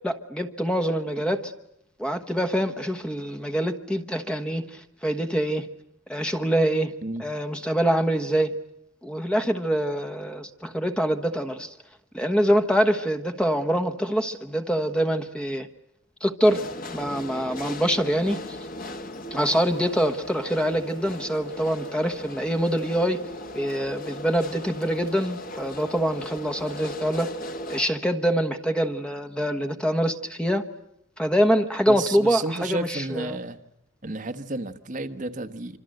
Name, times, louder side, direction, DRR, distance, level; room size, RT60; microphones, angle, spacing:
voice 1, 0.0-1.5 2.0-5.7 6.1-6.9 7.2-8.6 9.0-11.8 12.1-15.7 16.2-16.6 16.9-18.6 19.3-23.2 23.5-27.3 27.7-30.6 31.2-33.3, equal, 5° left, 6 dB, 1.2 m, -25 dB
sound 1, 16.4-27.9, left 1 dB, 45° left, 1.4 m, -38 dB
voice 2, 31.9-33.6 34.0-35.8, right 2 dB, 40° right, 9 dB, 1.2 m, -32 dB
26.0 x 26.0 x 7.9 m, 0.81 s
head